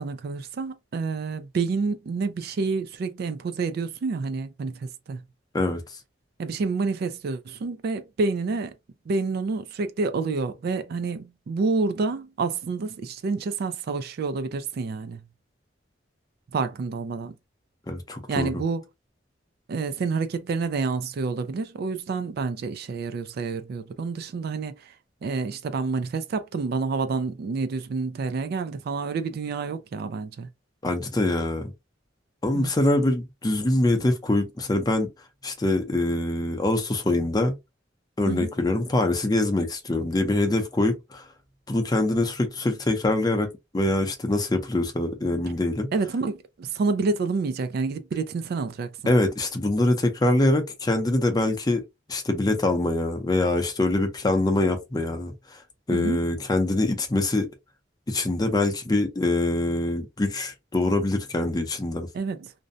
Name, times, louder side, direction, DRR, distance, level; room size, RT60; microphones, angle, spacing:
voice 1, 0.0-5.2 6.4-8.7 9.1-15.2 16.5-17.4 18.3-18.8 19.7-24.9 25.2-30.5 32.5-32.7 38.3-38.5 45.9-49.1 55.9-56.2 62.1-62.5, right 4 dB, 55° right, 0.3 m, -28 dB
voice 2, 17.9-18.5 30.8-31.7 32.4-35.1 35.4-37.5 38.2-41.2 41.7-43.5 43.7-45.9 49.1-51.8 52.1-55.6 55.9-57.5 58.1-62.1, left 2 dB, 20° left, 0.5 m, -24 dB
2.6 x 2.1 x 2.5 m
head